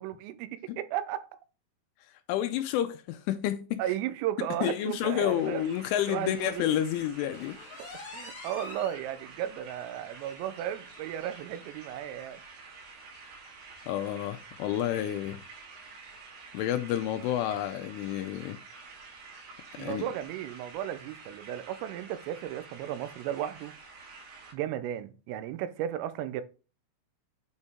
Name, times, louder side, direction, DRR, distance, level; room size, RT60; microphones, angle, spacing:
voice 1, 0.0-1.4 3.8-5.6 6.1-6.6 8.1-12.4 19.8-23.8 24.5-26.4, right 11 dB, 90° right, 3.3 m, -34 dB
voice 2, 2.3-3.8 4.6-7.6 13.9-15.4 16.5-18.6 19.8-20.1, left 11 dB, 85° left, 2.9 m, -30 dB
sound 1, 4.7-24.5, right 4 dB, 70° right, 4.5 m, -49 dB
sound 2, 7.3-9.0 9.5-9.6 10.0-10.1 10.5-10.6 11.6-11.7, left 4 dB, 55° left, 2.2 m, -44 dB
8.8 x 4.1 x 3.6 m
omnidirectional pair, 5.8 m